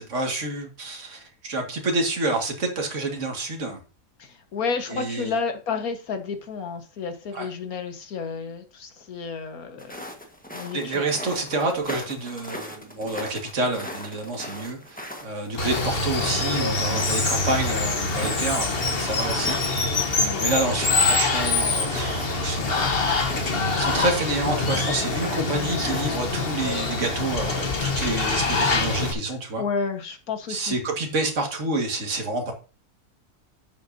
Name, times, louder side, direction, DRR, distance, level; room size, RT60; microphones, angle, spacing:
voice 1, 0.0-3.8 4.9-5.3 7.3-7.5 10.7-20.0 20.4-23.1 23.8-29.6 30.5-32.5, right 2 dB, 50° right, 2.2 m, -28 dB
voice 2, 4.2-10.0 10.5-11.0 20.2-20.5 29.5-30.8, left 5 dB, 70° left, 1.8 m, -31 dB
sound 1, 9.8-26.3, equal, 5° left, 1.2 m, -39 dB
Water, 15.6-29.1, left 3 dB, 40° left, 1.3 m, -25 dB
11.0 x 7.4 x 2.7 m
omnidirectional pair, 1.6 m